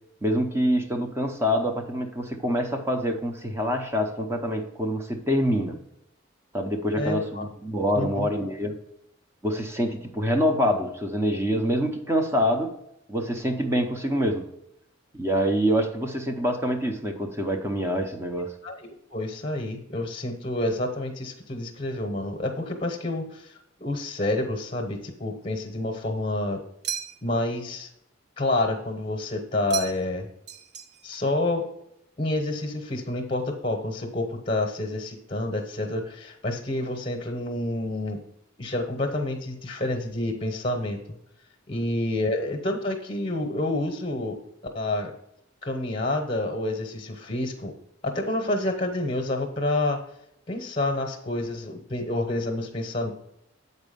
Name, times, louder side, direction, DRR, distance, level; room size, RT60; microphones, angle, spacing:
voice 1, 0.2-5.8 6.5-8.7 9.4-12.7 13.1-14.5 15.1-18.5, equal, 15° right, 4 dB, 0.7 m, -26 dB
voice 2, 7.0-7.5 8.0-8.3 18.6-23.5 23.8-26.6 27.2-27.9 28.4-30.3 31.0-31.7 32.2-38.2 38.6-41.0 41.7-44.4 44.7-45.1 45.6-47.7 48.0-50.0 50.5-53.1, left 2 dB, 30° left, 3 dB, 0.9 m, -28 dB
sound 1, 26.8-27.5 29.7-30.2 30.5-31.2, right 8 dB, 55° right, 0.6 m, -35 dB
8.1 x 4.2 x 5.2 m, 0.77 s
head